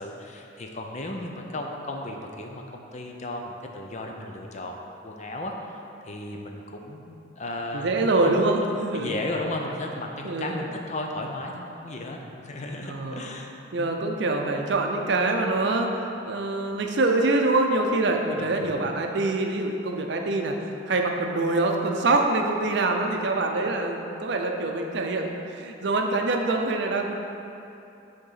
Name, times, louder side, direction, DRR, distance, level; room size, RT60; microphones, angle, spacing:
voice 1, 0.0-7.9 8.2-8.4 8.9-13.9 18.4-18.7, left 1 dB, 35° left, 2 dB, 0.5 m, -35 dB
voice 2, 7.7-9.2 10.2-10.7 12.8-13.3 13.7-20.5 20.9-27.1, right 2 dB, 60° right, 2 dB, 0.6 m, -25 dB
6.6 x 3.6 x 5.6 m, 2.8 s
head